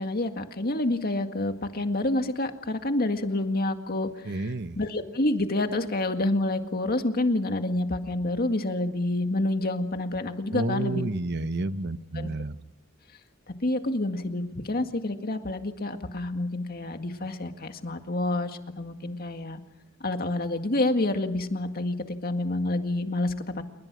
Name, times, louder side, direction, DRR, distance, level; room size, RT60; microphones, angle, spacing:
voice 1, 0.0-11.0 12.1-12.3 13.6-19.6 20.0-23.6, left 2 dB, 45° left, 6 dB, 2.0 m, -28 dB
voice 2, 4.3-4.8 10.5-12.6, right 2 dB, 55° right, 12 dB, 0.9 m, -30 dB
29.0 x 22.0 x 6.2 m, 0.87 s
head